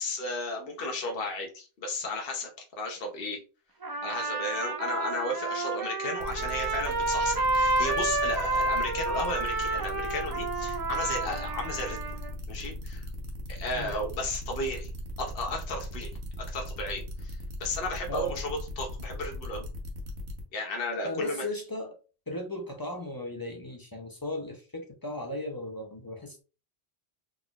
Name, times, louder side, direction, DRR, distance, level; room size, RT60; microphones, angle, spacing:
voice 1, 0.0-2.5 2.8-3.4 4.0-12.0 12.5-13.1 13.5-14.9 15.2-19.6 20.5-21.4, left 2 dB, 60° left, 1 dB, 1.0 m, -34 dB
Trumpet, 3.8-12.3, right 3 dB, 40° right, 0.3 m, -30 dB
sound 1, 6.2-20.4, equal, 85° right, 1.2 m, -38 dB
voice 2, 21.0-22.0 22.3-26.4, left 1 dB, 25° left, 3 dB, 0.5 m, -36 dB
4.0 x 3.7 x 2.3 m, 0.34 s
omnidirectional pair, 1.1 m